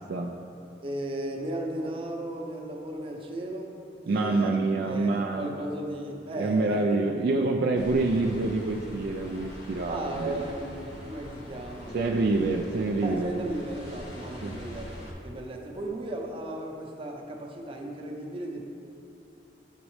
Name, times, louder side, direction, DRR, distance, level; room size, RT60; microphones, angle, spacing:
voice 1, 0.8-3.7 4.1-4.6 4.8-7.0 9.8-12.4 13.0-18.6, right 1 dB, 30° right, 1 dB, 0.7 m, -36 dB
voice 2, 4.1-5.6 6.4-10.4 11.9-13.3 14.4-14.6, right 3 dB, 60° right, 2 dB, 0.3 m, -26 dB
sound 1, 7.7-15.1, equal, 75° left, 1.3 m, -43 dB
9.8 x 4.1 x 3.2 m, 2.8 s
head